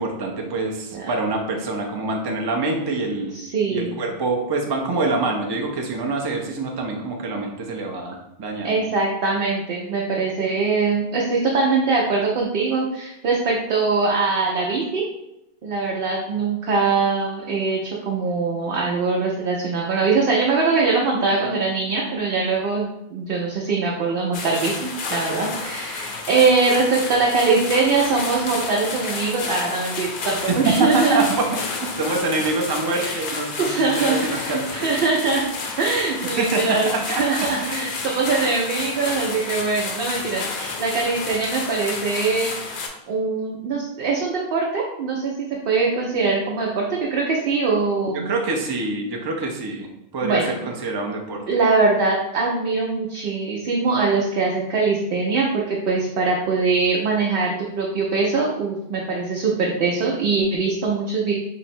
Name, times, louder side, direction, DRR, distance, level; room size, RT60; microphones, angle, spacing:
voice 1, 0.0-3.3 3.7-8.8 30.5-31.5 31.8-35.0 36.4-37.3 37.6-37.9 48.1-49.9 50.1-51.4, right 2 dB, 35° right, 1 dB, 0.4 m, -25 dB
voice 2, 3.3-4.0 8.6-15.0 15.6-31.2 32.9-33.2 33.6-35.5 35.8-42.8 43.1-48.3 50.2-50.5 51.5-61.3, right 4 dB, 65° right, -2 dB, 0.8 m, -22 dB
sound 1, 24.3-42.9, left 4 dB, 60° left, 0.7 m, -31 dB
3.8 x 2.0 x 4.3 m, 0.88 s
omnidirectional pair, 1.0 m